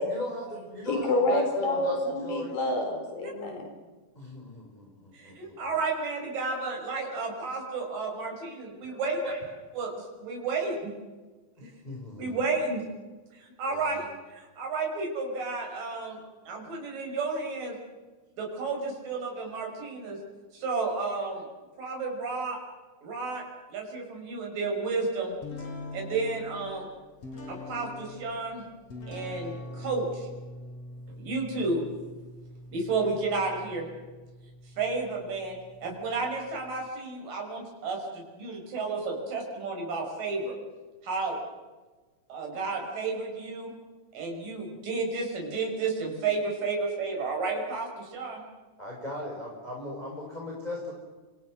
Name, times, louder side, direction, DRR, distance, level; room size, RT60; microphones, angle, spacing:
voice 1, 0.0-2.5 4.1-5.6 8.9-9.4 11.8-12.4 13.7-14.0 48.8-50.9, left 1 dB, 10° left, -1 dB, 4.9 m, -38 dB
voice 2, 0.9-3.7, left 1 dB, 80° left, 4 dB, 5.7 m, -28 dB
voice 3, 5.1-9.2 9.8-10.9 11.6-11.7 12.2-12.8 13.3-16.2 16.5-17.8 18.4-20.2 20.5-21.5 21.8-22.6 23.0-23.4 23.7-25.4 25.9-26.9 27.5-28.6 29.1-30.3 31.2-31.9 32.7-33.9 34.8-40.6 41.0-41.4 42.3-43.7 44.1-48.4, right 3 dB, 70° right, 1 dB, 7.2 m, -32 dB
sound 1, 25.4-36.9, left 2 dB, 45° left, 5.6 m, -44 dB
30.0 x 26.5 x 6.2 m, 1.3 s
omnidirectional pair, 4.0 m